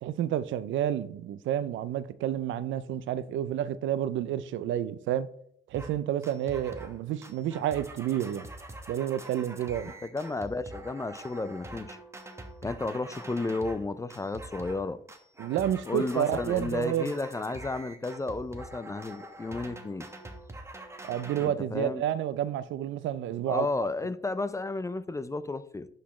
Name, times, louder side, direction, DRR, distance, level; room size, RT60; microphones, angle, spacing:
voice 1, 0.0-5.3 5.7-8.5 8.9-9.9 15.4-17.1 21.0-23.7, right 11 dB, 80° right, 0.4 m, -30 dB
sound 1, 5.7-6.0 6.2-7.0 7.2-13.8 14.1-14.8 15.1-21.5, right 1 dB, 15° right, 0.9 m, -44 dB
voice 2, 9.9-12.0 12.6-15.0 15.9-20.1 21.4-22.0 23.5-25.9, left 3 dB, 15° left, 0.4 m, -33 dB
11.5 x 4.2 x 3.1 m
cardioid pair, 90°, 20 cm